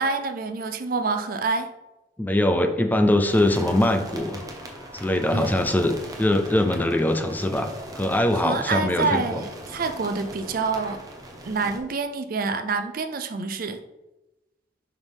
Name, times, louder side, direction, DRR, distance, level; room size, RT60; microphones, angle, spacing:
voice 1, 0.0-1.7 5.3-5.6 8.3-11.0 11.4-13.8, right 4 dB, 50° right, 8 dB, 0.5 m, -27 dB
voice 2, 2.2-4.4 4.9-5.9 6.2-9.4, left 1 dB, 10° left, 6 dB, 0.4 m, -22 dB
sound 1, 3.3-11.8, right 1 dB, 20° right, 1.0 m, -40 dB
6.1 x 5.3 x 3.5 m, 0.99 s
head